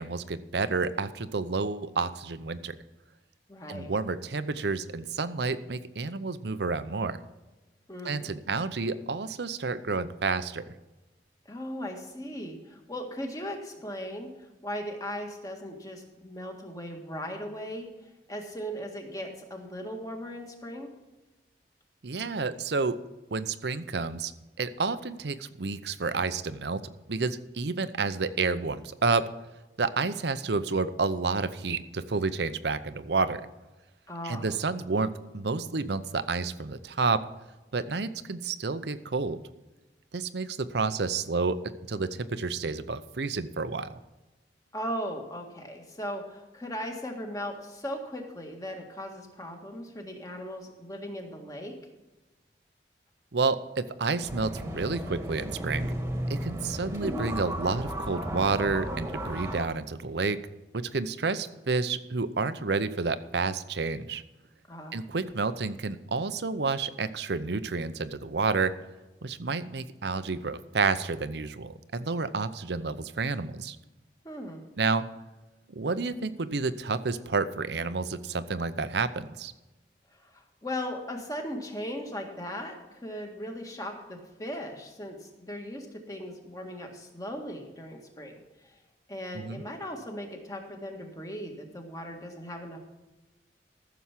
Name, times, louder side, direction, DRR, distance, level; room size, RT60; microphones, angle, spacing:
voice 1, 0.0-2.8 3.7-7.2 8.0-10.6 22.0-23.0 23.3-24.3 24.6-29.3 29.8-33.5 34.2-37.2 37.7-39.4 40.1-44.0 53.3-55.9 56.3-60.4 60.7-64.2 64.9-68.7 69.2-73.8 74.8-75.1 75.7-79.5 89.3-89.6, right 4 dB, 70° right, 13 dB, 0.7 m, -30 dB
voice 2, 3.5-3.9 7.9-8.3 11.5-17.9 18.3-20.9 34.1-34.4 44.7-51.7 64.7-65.0 74.2-74.6 80.1-88.3 88.6-88.8 89.1-93.0, equal, 20° left, 2 dB, 1.7 m, -38 dB
sound 1, 54.2-59.7, equal, 15° right, 1.5 m, -34 dB
14.5 x 7.0 x 5.9 m, 1.1 s
head